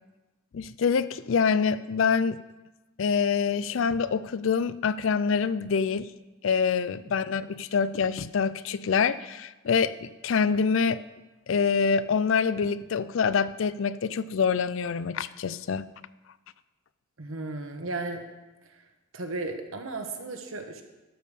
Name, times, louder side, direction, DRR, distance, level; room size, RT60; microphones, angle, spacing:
voice 1, 0.5-2.4 3.0-6.1 6.4-11.0 11.5-15.9, left 6 dB, 70° left, 16 dB, 0.4 m, -25 dB
voice 2, 17.2-18.2 18.6-18.8 19.1-20.8, right 2 dB, 85° right, 4 dB, 1.3 m, -35 dB
12.0 x 5.3 x 6.8 m, 1.1 s
head